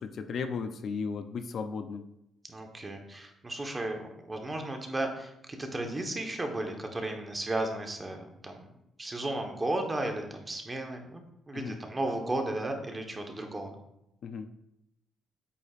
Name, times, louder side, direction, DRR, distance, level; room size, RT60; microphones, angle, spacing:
voice 1, 0.0-2.1 11.5-11.8 14.2-14.5, left 5 dB, 60° left, 9 dB, 0.5 m, -35 dB
voice 2, 2.5-8.6 9.0-13.7, right 2 dB, 20° right, 4 dB, 1.1 m, -34 dB
8.5 x 5.0 x 2.5 m, 0.82 s
cardioid pair, 90°, 0 cm